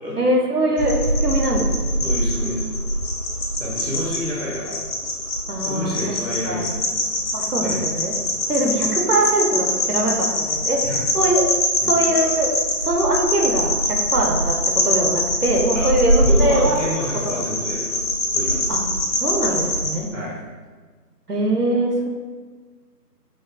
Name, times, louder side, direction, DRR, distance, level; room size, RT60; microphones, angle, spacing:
voice 1, 0.2-2.0 5.5-6.0 6.5-6.7 7.3-8.2 8.5-10.9 11.1-11.5 11.9-12.5 12.8-16.8 18.7-18.8 19.2-20.1 21.3-22.1, right 1 dB, 65° right, 0 dB, 0.7 m, -22 dB
sound 1, 0.8-19.9, left 1 dB, 75° left, 0.8 m, -23 dB
voice 2, 2.0-2.6 3.6-4.8 5.7-7.0 7.6-7.8 8.5-8.6 10.8-11.0 11.8-11.9 15.7-15.9 16.2-18.7 20.1-20.4, left 1 dB, 50° left, -7 dB, 1.1 m, -29 dB
5.0 x 2.0 x 2.2 m, 1.4 s
figure-of-eight pair, 175°, 49 cm